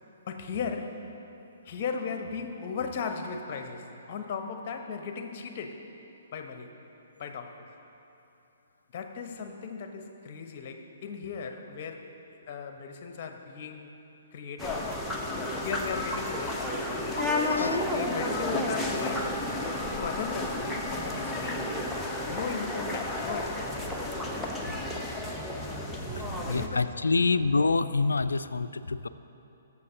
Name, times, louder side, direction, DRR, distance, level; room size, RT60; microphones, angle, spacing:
voice 1, 0.3-1.1 1.6-5.9 6.3-6.7 7.2-7.7 8.9-12.1 12.5-13.9 14.3-14.9 15.6-16.9 17.6-19.5 20.0-21.7 22.3-23.8 26.1-26.2 26.5-27.4, left 5 dB, 40° left, 6 dB, 0.9 m, -37 dB
sound 1, 14.6-26.7, left 1 dB, 5° left, 0.9 m, -32 dB
voice 2, 17.1-17.8 26.0-26.1 26.5-29.1, left 3 dB, 75° left, 13 dB, 0.3 m, -27 dB
21.5 x 7.1 x 2.8 m, 3.0 s
figure-of-eight pair, 125°, 0 cm